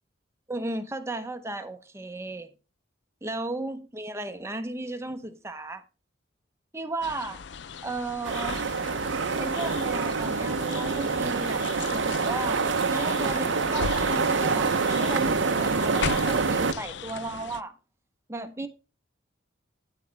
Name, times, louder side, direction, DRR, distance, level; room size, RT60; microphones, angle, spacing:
voice 1, 0.5-2.5 3.2-5.8 6.7-7.4 7.8-8.6 9.4-12.6 12.9-17.7 18.3-18.7, right 2 dB, 15° right, 0.8 m, -35 dB
sound 1, 7.0-17.6, left 6 dB, 65° left, 0.4 m, -38 dB
sound 2, 8.2-16.7, right 4 dB, 75° right, 0.7 m, -26 dB
9.8 x 7.8 x 3.4 m
head